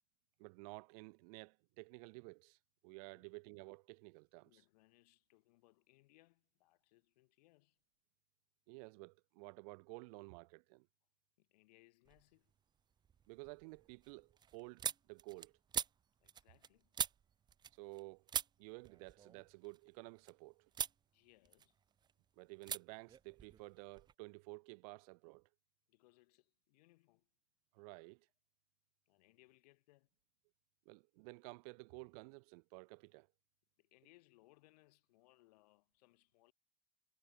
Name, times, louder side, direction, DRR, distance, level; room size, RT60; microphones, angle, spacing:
voice 1, 0.4-2.6 2.8-4.5 8.7-10.9 13.3-15.6 17.8-18.3 18.6-20.7 22.4-25.5 27.7-28.3 30.9-33.3, right 30 dB, 60° right, 1.7 m, -53 dB
voice 2, 4.4-7.8 11.4-12.5 16.2-16.9 21.1-21.8 25.9-27.3 29.1-30.1 33.8-36.5, left 20 dB, 70° left, 6.8 m, -70 dB
sound 1, 12.0-12.6 13.0-18.0 18.3-20.3 20.7-21.0 21.4-22.1 22.6-22.8 23.1-24.1, right 8 dB, 20° right, 1.0 m, -44 dB
supercardioid pair, 145°, 21 cm